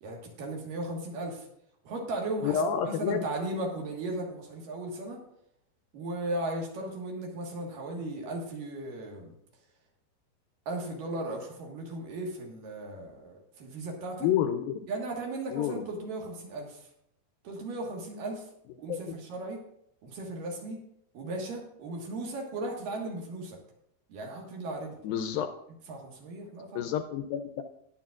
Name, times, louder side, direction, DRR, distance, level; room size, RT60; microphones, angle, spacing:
voice 1, 0.0-1.5 1.8-5.2 5.9-9.3 10.7-14.3 14.9-16.9 17.4-18.5 18.8-19.6 20.0-20.8 21.1-23.6 24.1-25.0 25.9-26.8, right 2 dB, 65° right, 0 dB, 3.0 m, -36 dB
voice 2, 2.4-3.2 14.2-14.8 15.5-15.8 18.9-19.0 25.0-25.5 26.7-27.6, left 9 dB, 80° left, 7 dB, 2.2 m, -29 dB
19.5 x 7.7 x 2.5 m, 0.73 s
omnidirectional pair, 4.6 m